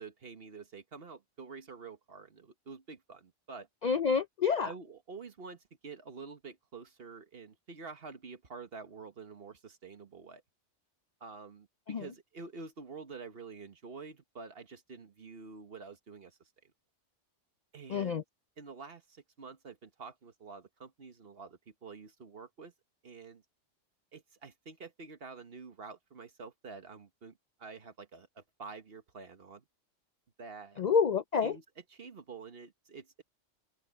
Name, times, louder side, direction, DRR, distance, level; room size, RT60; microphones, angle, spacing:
voice 1, 0.0-3.7 4.6-10.4 11.2-16.7 17.7-18.2 18.6-22.7 23.0-23.4 24.1-29.6 30.4-30.9 31.4-31.6 31.9-33.2, right 4 dB, 50° right, 1.5 m, -48 dB
voice 2, 3.8-4.7 11.9-12.0 17.9-18.2 30.8-31.6, left 6 dB, 55° left, 0.5 m, -28 dB
open air
omnidirectional pair, 1.3 m